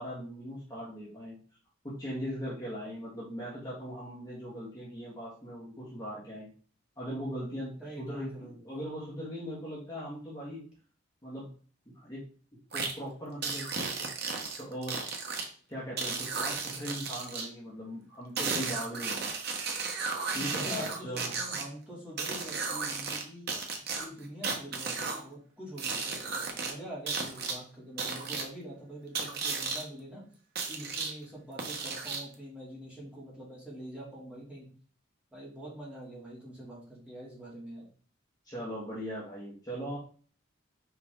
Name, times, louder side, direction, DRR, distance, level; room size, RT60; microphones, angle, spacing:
voice 1, 0.0-1.4 1.8-6.5 7.0-10.6 11.2-11.4 11.9-12.2 12.7-15.1 15.7-19.4 20.3-21.3 38.4-40.0, equal, 20° left, -8 dB, 2.2 m, -39 dB
voice 2, 7.8-8.6 20.3-30.2 30.7-34.7 35.3-37.9, right 1 dB, 5° right, -7 dB, 3.1 m, -45 dB
sound 1, 12.7-12.9 13.4-15.4 16.0-17.5 18.4-21.6 22.2-23.2 23.5-25.2 25.8-26.7 27.1-27.5 28.0-28.4 29.1-29.8 30.6-31.1 31.6-32.3, right 4 dB, 50° right, 1.3 m, -34 dB
5.9 x 5.2 x 3.8 m, 0.42 s
head